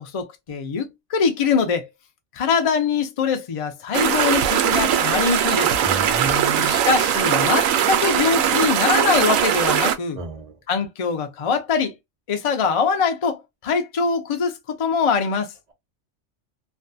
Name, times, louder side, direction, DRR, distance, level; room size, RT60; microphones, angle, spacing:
voice 1, 0.0-1.9 2.3-5.7 6.6-10.2 10.7-11.9 12.3-15.5, left 5 dB, 50° left, 0.4 m, -23 dB
sound 1, 3.9-9.9, right 9 dB, 85° right, 1.0 m, -20 dB
voice 2, 5.8-6.7 10.1-10.5, right 2 dB, 40° right, 0.7 m, -30 dB
2.6 x 2.2 x 2.5 m
omnidirectional pair, 1.3 m